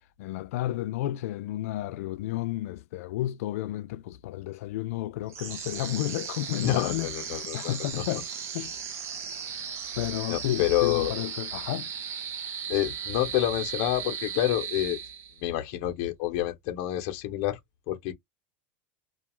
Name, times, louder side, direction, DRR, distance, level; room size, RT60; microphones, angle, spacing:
voice 1, 0.2-8.7 10.0-11.9, left 14 dB, 85° left, 0.4 m, -32 dB
sound 1, 5.3-15.5, right 7 dB, 35° right, 0.6 m, -36 dB
voice 2, 6.6-8.0 10.3-11.1 12.7-15.0 15.4-17.6 17.9-18.1, left 14 dB, 55° left, 0.7 m, -28 dB
2.3 x 2.3 x 3.0 m
supercardioid pair, 155°, 8 cm